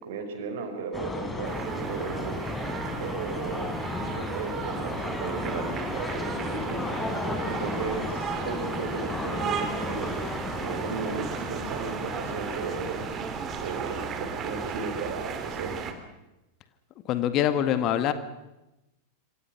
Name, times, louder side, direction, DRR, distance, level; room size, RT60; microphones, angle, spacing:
voice 1, 0.0-2.4 3.0-3.7 4.1-6.8 7.4-10.1 10.6-13.1 13.6-15.8, right 4 dB, 55° right, 6 dB, 5.5 m, -35 dB
sound 1, 0.9-14.2, left 2 dB, 10° left, 4.6 m, -34 dB
sound 2, 1.4-15.9, right 6 dB, 30° right, 3.3 m, -35 dB
voice 2, 17.1-18.1, left 10 dB, 35° left, 11 dB, 1.9 m, -24 dB
27.0 x 26.5 x 6.1 m, 0.96 s
figure-of-eight pair, 90°, 0 cm